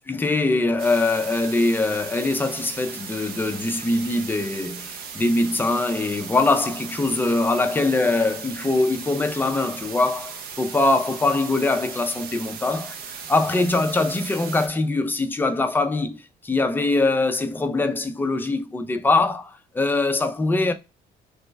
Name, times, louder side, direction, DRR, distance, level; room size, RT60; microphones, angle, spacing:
voice 1, 0.1-13.0 13.3-20.7, left 2 dB, 10° left, 0.4 m, -22 dB
sound 1, 0.8-14.7, right 6 dB, 65° right, 0.6 m, -37 dB
3.1 x 2.2 x 3.3 m
cardioid pair, 110°, 17 cm